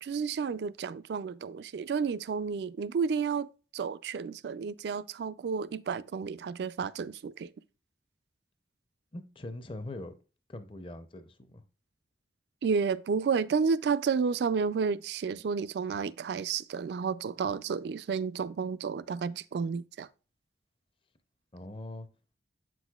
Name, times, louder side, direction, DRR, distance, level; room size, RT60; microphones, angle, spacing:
voice 1, 0.0-7.5 12.6-20.1, right 5 dB, 65° right, 0.3 m, -31 dB
voice 2, 9.1-10.1 10.5-11.6 21.5-22.1, left 1 dB, 30° left, 0.5 m, -42 dB
7.9 x 6.2 x 2.3 m
head